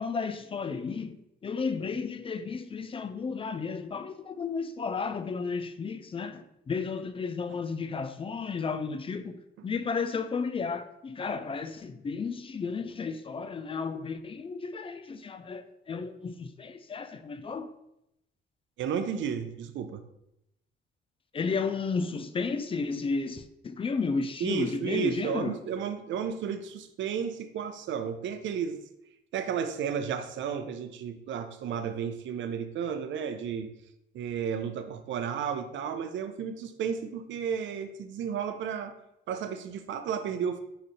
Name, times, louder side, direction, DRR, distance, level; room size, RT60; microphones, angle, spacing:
voice 1, 0.0-17.7 21.3-25.6, left 5 dB, 25° left, 0.4 m, -33 dB
voice 2, 18.8-20.0 24.4-28.8 29.3-33.7 34.1-38.9 39.3-40.6, right 7 dB, 70° right, 0.5 m, -33 dB
5.0 x 2.5 x 4.0 m
cardioid pair, 90°, 20 cm